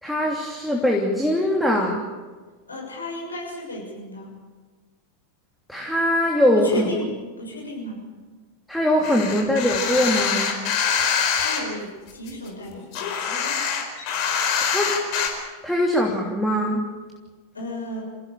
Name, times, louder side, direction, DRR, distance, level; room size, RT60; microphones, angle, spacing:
voice 1, 0.0-2.1 5.7-6.8 8.7-10.6 14.6-15.0 15.6-16.8, left 1 dB, ahead, -2 dB, 3.0 m, -22 dB
voice 2, 2.7-4.3 6.5-7.1 7.4-8.0 11.3-13.1 17.5-18.0, left 1 dB, 75° left, 0 dB, 6.5 m, -34 dB
sound 1, 9.0-11.6 12.1-15.3, left 7 dB, 45° left, 4.6 m, -24 dB
29.0 x 16.5 x 7.0 m, 1.4 s
figure-of-eight pair, 90°, 0 cm